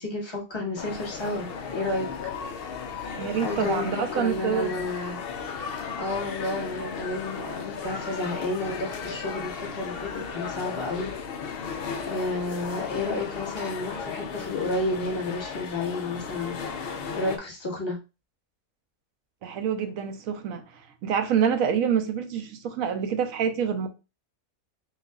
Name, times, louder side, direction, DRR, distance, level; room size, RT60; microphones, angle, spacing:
voice 1, 0.0-2.3 3.4-5.2 6.0-11.1 12.0-16.8 17.1-18.0, left 2 dB, 20° left, 1.3 m, -31 dB
sound 1, 0.8-17.4, left 6 dB, 60° left, 0.6 m, -35 dB
voice 2, 3.2-4.7 19.4-23.9, right 7 dB, 75° right, 1.1 m, -27 dB
6.5 x 2.4 x 2.3 m
omnidirectional pair, 1.5 m